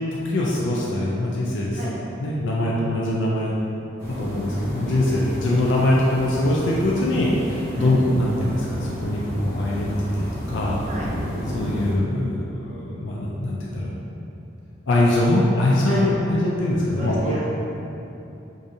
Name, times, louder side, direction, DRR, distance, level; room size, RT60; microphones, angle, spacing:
voice 1, 0.1-1.7 2.2-3.5 4.2-10.8 11.5-14.0 14.9-17.3, left 1 dB, 75° left, -5 dB, 0.4 m, -22 dB
sound 1, 4.0-11.9, equal, 10° left, 0.9 m, -32 dB
voice 2, 17.0-17.4, equal, 40° right, -6 dB, 0.7 m, -33 dB
4.8 x 2.7 x 2.6 m, 2.9 s
head